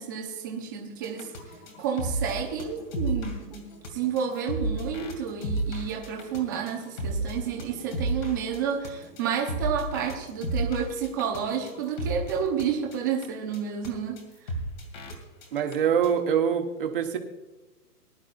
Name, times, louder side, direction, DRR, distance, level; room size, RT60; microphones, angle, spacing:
voice 1, 0.0-1.3 1.8-14.2, right 7 dB, 15° right, 0.9 m, -30 dB
sound 1, 1.0-12.6 12.9-13.2 13.5-13.6 13.8-13.9 14.2-14.3 14.5-15.1 15.4-15.7 16.0-16.1, right 1 dB, 30° left, 2.3 m, -33 dB
voice 2, 15.5-17.2, right 8 dB, 35° right, 1.5 m, -24 dB
21.0 x 11.5 x 2.6 m
hypercardioid pair, 175°, 47 cm